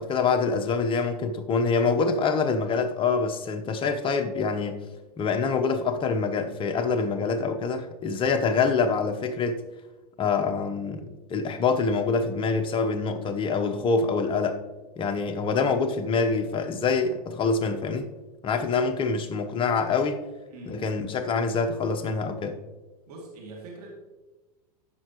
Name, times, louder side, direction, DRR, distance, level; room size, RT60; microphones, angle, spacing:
voice 1, 0.0-4.8 5.2-9.6 10.2-14.6 15.0-18.1 18.4-20.2 20.7-22.6, left 4 dB, 25° left, 0.9 m, -25 dB
voice 2, 20.5-21.0 23.1-23.9, right 2 dB, 75° right, 2.5 m, -43 dB
14.5 x 5.9 x 3.0 m
hypercardioid pair, 115°, 20 cm